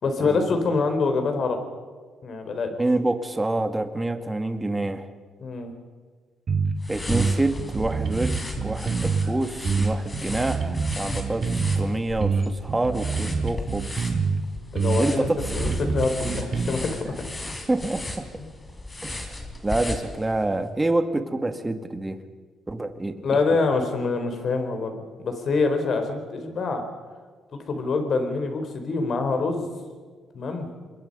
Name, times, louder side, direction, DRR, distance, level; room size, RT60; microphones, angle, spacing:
voice 1, 0.0-1.6 2.2-2.7 5.4-5.7 14.7-17.2 23.2-26.9 27.5-29.7 30.3-30.7, left 3 dB, 55° left, 6 dB, 4.2 m, -25 dB
voice 2, 2.8-5.1 6.9-14.1 14.9-15.4 15.6-15.8 17.7-18.3 19.0-22.2 22.7-23.4, right 2 dB, 15° right, 7 dB, 2.0 m, -27 dB
sound 1, 6.5-6.7 7.1-9.3 9.6-11.9 12.2-14.4 14.7-16.7, right 5 dB, 45° right, 2.2 m, -26 dB
sound 2, 6.8-20.5, left 2 dB, 25° left, 4.1 m, -36 dB
28.0 x 22.0 x 5.5 m, 1.5 s
cardioid pair, 90°, 0 cm